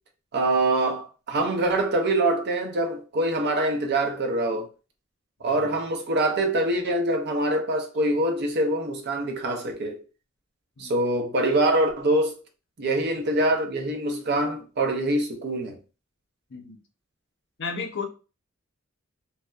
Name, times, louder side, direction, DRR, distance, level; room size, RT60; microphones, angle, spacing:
voice 1, 0.3-4.7 5.4-10.0 10.8-12.3 12.8-15.8, right 1 dB, 50° right, 0.6 m, -24 dB
voice 2, 17.6-18.1, left 5 dB, 55° left, 0.6 m, -33 dB
2.7 x 2.1 x 2.2 m
head